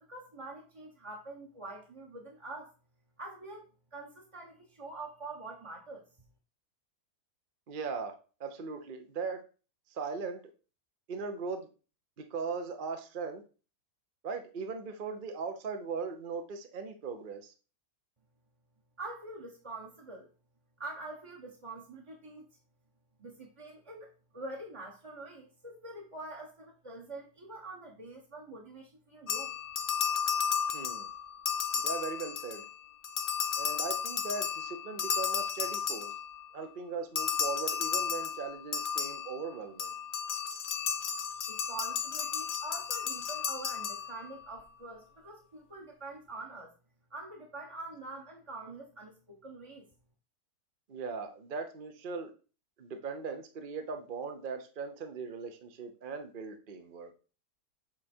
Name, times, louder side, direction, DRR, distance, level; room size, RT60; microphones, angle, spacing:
voice 1, 0.1-2.7 3.2-3.6 3.9-6.0 19.0-20.3 20.8-22.5 23.2-29.5 41.5-46.7 47.1-49.9, right 2 dB, 25° right, -2 dB, 0.9 m, -45 dB
voice 2, 7.7-8.1 8.4-9.4 9.9-10.4 11.1-11.7 12.2-13.4 14.2-17.5 30.7-31.1 31.8-32.6 33.6-36.1 36.5-39.9 50.9-52.3 52.8-57.1, right 5 dB, 45° right, 6 dB, 0.7 m, -39 dB
sound 1, 29.3-32.7 33.0-36.5 37.2-44.4, left 7 dB, 65° left, 0.5 m, -33 dB
7.7 x 3.7 x 4.4 m, 0.36 s
omnidirectional pair, 1.7 m